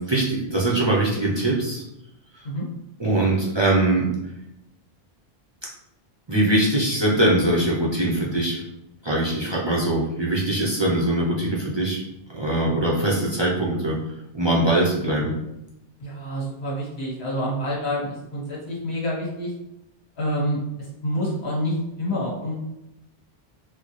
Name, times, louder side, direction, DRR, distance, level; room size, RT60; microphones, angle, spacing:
voice 1, 0.0-1.8 3.0-4.1 6.3-8.6 9.0-12.0 12.3-14.0 14.3-15.3, right 1 dB, 30° right, -4 dB, 0.6 m, -22 dB
voice 2, 16.0-19.5 20.2-20.6 21.0-22.5, equal, 90° left, -5 dB, 1.7 m, -27 dB
4.0 x 2.2 x 3.1 m, 0.86 s
omnidirectional pair, 1.1 m